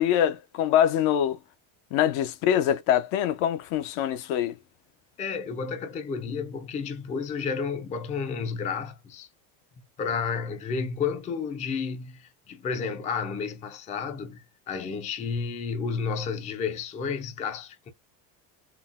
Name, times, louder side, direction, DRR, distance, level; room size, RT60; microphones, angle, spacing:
voice 1, 0.0-1.4 1.9-4.6, left 10 dB, 75° left, 0.7 m, -24 dB
voice 2, 5.2-9.3 10.0-17.9, left 5 dB, 20° left, 0.3 m, -31 dB
3.9 x 2.0 x 2.4 m
cardioid pair, 130°, 43 cm